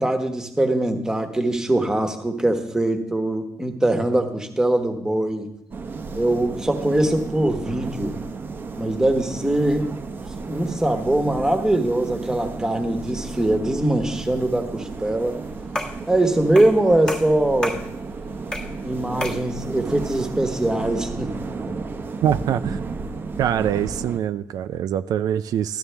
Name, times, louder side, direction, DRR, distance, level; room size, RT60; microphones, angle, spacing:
voice 1, 0.0-5.5 6.2-8.1 8.8-10.0 10.5-15.4 16.1-17.8 18.8-21.3, right 1 dB, 10° right, 5 dB, 1.3 m, -22 dB
sound 1, 5.7-24.2, right 4 dB, 35° right, 0.7 m, -33 dB
sound 2, 15.7-16.1 16.6-16.8 17.1-17.9 18.5-18.8 19.2-19.5, left 1 dB, 15° left, 1.2 m, -30 dB
voice 2, 22.2-22.8 23.4-25.8, right 10 dB, 75° right, 11 dB, 0.4 m, -23 dB
14.0 x 12.5 x 3.4 m, 0.77 s
cardioid pair, 155°, 7 cm